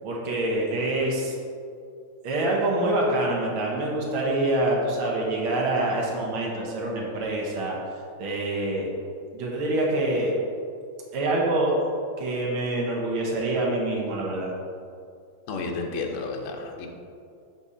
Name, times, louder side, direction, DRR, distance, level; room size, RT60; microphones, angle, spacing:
voice 1, 0.0-1.3 2.2-7.8 8.2-8.9 9.3-10.3 11.1-11.7 12.2-14.5, right 2 dB, 75° right, -3 dB, 1.9 m, -26 dB
voice 2, 15.5-16.9, left 3 dB, 75° left, 2 dB, 0.7 m, -31 dB
7.1 x 4.2 x 4.9 m, 2.4 s
omnidirectional pair, 2.4 m